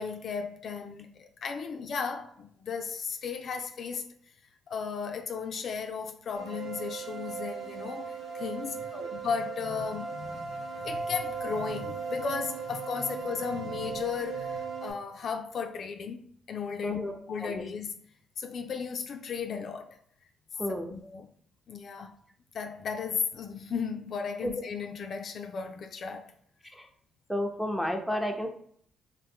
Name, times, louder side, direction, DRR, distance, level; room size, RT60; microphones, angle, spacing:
voice 1, 0.0-4.1 4.7-17.9 18.4-20.0 20.7-21.3 21.7-22.1 22.5-26.3, left 6 dB, 60° left, 0.3 m, -35 dB
sound 1, 6.4-14.9, right 5 dB, 75° right, 0.9 m, -37 dB
voice 2, 16.8-17.6 20.6-20.9 24.4-24.5 26.7-26.8 27.3-28.5, equal, ahead, 0.5 m, -32 dB
3.0 x 2.0 x 3.5 m
cardioid pair, 90°, 0 cm